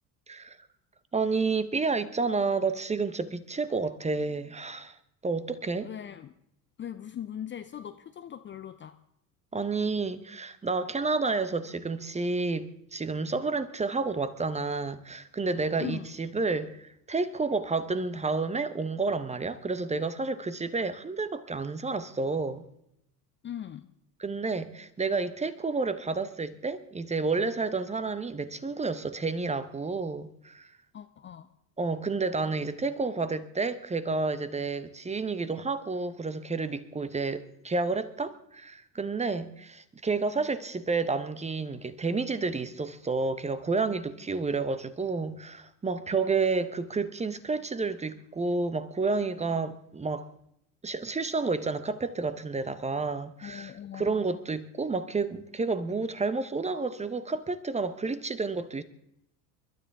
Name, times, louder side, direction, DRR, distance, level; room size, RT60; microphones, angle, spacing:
voice 1, 0.3-0.6 1.1-5.0 5.2-5.9 9.5-22.6 24.2-30.7 31.8-50.3 50.8-58.8, right 4 dB, 15° right, 0.9 m, -30 dB
voice 2, 5.8-6.3 6.8-9.0 15.8-16.1 23.4-23.9 30.9-31.5 53.4-54.2, left 10 dB, 25° left, 0.6 m, -40 dB
28.0 x 12.0 x 3.6 m
figure-of-eight pair, 65°, 50 cm